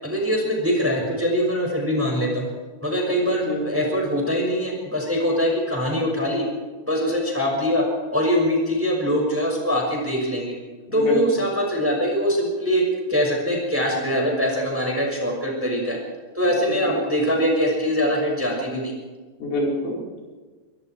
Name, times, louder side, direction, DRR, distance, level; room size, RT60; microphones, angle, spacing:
voice 1, 0.0-2.5 2.8-6.4 6.9-7.8 8.1-10.5 10.9-12.8 13.1-16.0 16.3-18.9, equal, 5° right, 0 dB, 5.7 m, -23 dB
voice 2, 3.4-3.9 10.9-11.2 16.8-16.9 19.4-20.2, left 1 dB, 65° left, -2 dB, 6.8 m, -27 dB
24.5 x 23.0 x 4.7 m, 1.4 s
omnidirectional pair, 4.7 m